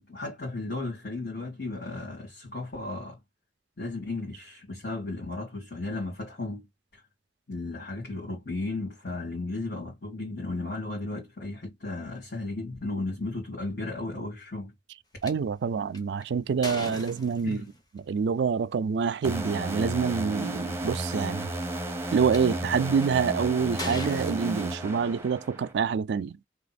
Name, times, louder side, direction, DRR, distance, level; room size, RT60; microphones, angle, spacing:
voice 1, 0.0-3.2 3.8-6.6 6.9-7.0 7.5-14.7 17.4-17.7, left 2 dB, 60° left, 1.9 m, -35 dB
sound 1, 15.2-15.3 15.9-17.8 19.1-19.3 19.9-20.0 20.2-20.7 21.4-22.4 23.0-23.3 23.8-25.2, left 1 dB, 25° left, 1.2 m, -39 dB
voice 2, 15.2-17.6 18.1-21.5 22.1-26.4, right 6 dB, 75° right, 0.4 m, -26 dB
sound 2, 19.2-25.7, right 1 dB, 15° right, 0.7 m, -33 dB
3.3 x 2.9 x 4.1 m
head